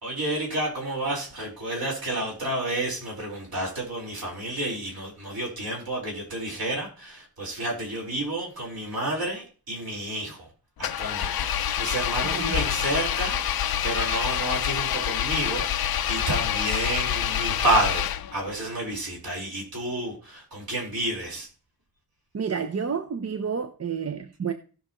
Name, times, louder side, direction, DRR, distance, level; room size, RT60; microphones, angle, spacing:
voice 1, 0.0-10.5 10.8-18.1 18.3-21.5, right 1 dB, 60° right, 4.4 m, -30 dB
Engine, 10.8-18.5, left 10 dB, 65° left, 0.5 m, -27 dB
voice 2, 22.3-24.5, right 6 dB, 40° right, 0.7 m, -30 dB
17.0 x 6.4 x 3.0 m
wide cardioid pair, 155°, 40 cm